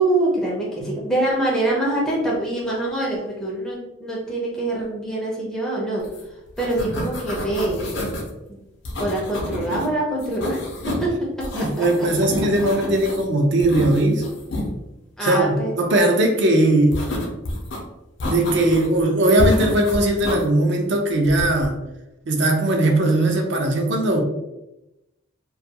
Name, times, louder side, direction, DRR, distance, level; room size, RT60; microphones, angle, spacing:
voice 1, 0.0-6.1 6.6-7.9 8.5-8.6 9.0-11.9 15.2-15.7, right 1 dB, 5° left, -5 dB, 0.5 m, -24 dB
sound 1, 6.0-6.2 6.5-8.3 8.9-9.9 10.2-11.1 11.4-13.3 13.6-14.7 16.9-17.8 18.2-19.0 19.4-20.4 21.3-21.7, left 1 dB, 60° left, 0.5 m, -28 dB
voice 2, 11.5-14.2 15.2-17.0 18.3-21.8 22.3-24.2, right 1 dB, 60° right, 3 dB, 0.4 m, -19 dB
2.3 x 2.2 x 2.7 m, 0.94 s
head